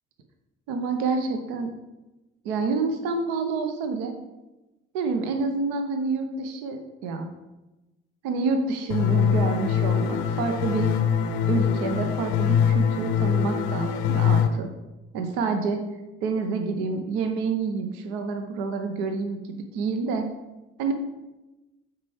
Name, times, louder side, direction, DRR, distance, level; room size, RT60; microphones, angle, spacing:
voice 1, 0.7-1.7 2.4-4.1 4.9-7.3 8.2-10.9 11.5-14.7 15.1-15.8 16.2-19.4 19.7-20.3 20.8-20.9, right 4 dB, 65° right, 6 dB, 0.7 m, -28 dB
sound 1, 8.9-14.5, left 7 dB, 65° left, 0.6 m, -23 dB
9.4 x 4.6 x 3.2 m, 1.0 s
figure-of-eight pair, 40°, 34 cm